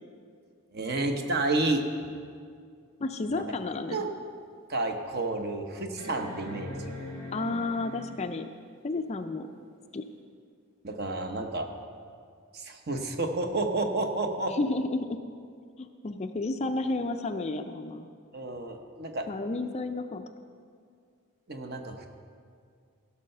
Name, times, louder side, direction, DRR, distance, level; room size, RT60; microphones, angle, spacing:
voice 1, 0.7-1.8 3.3-3.4 3.9-4.1 4.7-6.7 10.8-11.7 12.5-14.5 18.3-19.3 21.5-22.1, right 2 dB, 45° right, 5 dB, 0.9 m, -30 dB
voice 2, 3.0-4.0 7.3-8.5 8.8-9.5 9.9-10.0 14.5-15.2 15.8-18.1 19.3-20.2, left 2 dB, 30° left, 8 dB, 0.4 m, -31 dB
sound 1, 3.8-3.9 4.5-4.6 6.0-8.4 10.2-10.3, left 1 dB, 85° right, 3.7 m, -41 dB
16.5 x 5.6 x 6.6 m, 2.2 s
head